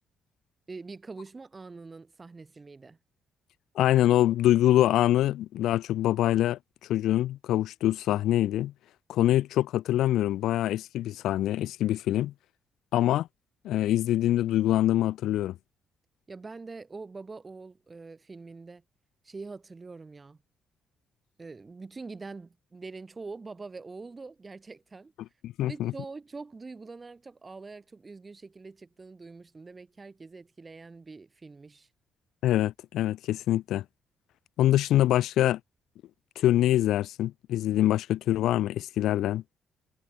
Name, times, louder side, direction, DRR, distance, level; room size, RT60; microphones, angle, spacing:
voice 1, 0.7-3.0 16.3-18.8 19.2-20.4 21.4-25.1 25.6-31.9, right 3 dB, 25° right, 4.3 m, -44 dB
voice 2, 3.8-6.6 6.9-8.7 9.1-12.3 12.9-13.3 13.6-15.6 25.4-25.9 32.4-33.8 34.6-35.6 36.4-39.4, left 13 dB, 85° left, 0.8 m, -24 dB
cardioid pair, 90°, 0 cm